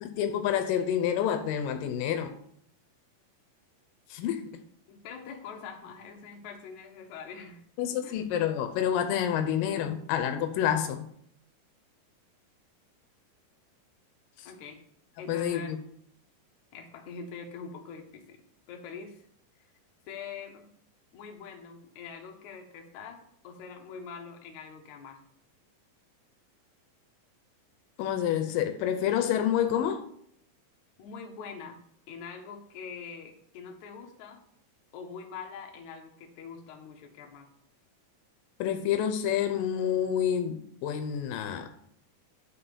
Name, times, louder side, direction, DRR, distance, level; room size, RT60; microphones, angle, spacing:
voice 1, 0.0-2.3 4.1-4.4 7.8-11.1 14.4-14.5 15.3-15.8 28.0-30.0 38.6-41.7, left 9 dB, 85° left, 7 dB, 2.4 m, -28 dB
voice 2, 4.9-7.6 8.0-8.2 14.5-14.8 15.2-15.7 16.7-18.4 18.7-19.3 19.6-19.7 20.1-20.7 21.1-25.2 31.0-31.8 32.1-34.4 34.9-37.5, left 6 dB, 70° left, 2 dB, 2.3 m, -44 dB
10.5 x 4.2 x 5.2 m, 0.67 s
omnidirectional pair, 3.9 m